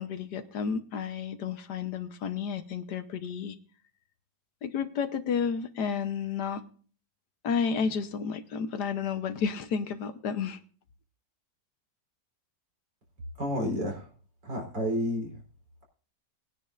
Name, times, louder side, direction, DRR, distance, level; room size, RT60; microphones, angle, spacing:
voice 1, 0.0-3.5 4.6-6.6 7.4-10.6, left 6 dB, 70° left, 1.5 m, -31 dB
voice 2, 13.4-14.1 14.4-15.3, equal, 75° right, 4.7 m, -30 dB
21.0 x 9.8 x 2.5 m
omnidirectional pair, 1.9 m